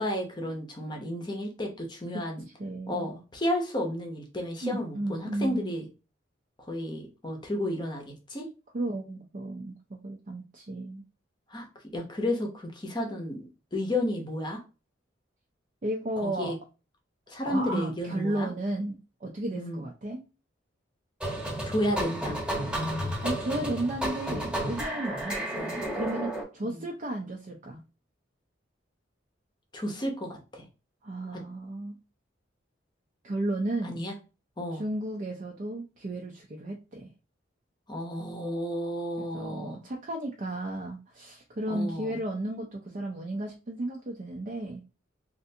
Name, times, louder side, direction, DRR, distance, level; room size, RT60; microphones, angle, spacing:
voice 1, 0.0-2.4 2.9-5.9 6.6-8.5 11.5-11.7 11.9-14.6 16.2-16.6 17.3-18.5 19.5-19.9 21.6-22.4 26.7-26.8 29.7-30.6 31.3-31.4 33.8-34.1 34.6-34.8 37.9-39.8 41.7-42.2, left 1 dB, 25° left, 2 dB, 0.7 m, -32 dB
voice 2, 2.6-3.1 4.6-5.8 8.7-11.0 15.8-16.5 17.4-20.2 23.2-27.8 31.0-32.0 33.2-34.0 34.7-37.1 39.2-44.8, right 1 dB, 40° right, 1 dB, 0.5 m, -34 dB
sound 1, 21.2-26.4, right 1 dB, 5° right, 1.0 m, -32 dB
3.3 x 2.5 x 2.7 m, 0.32 s
head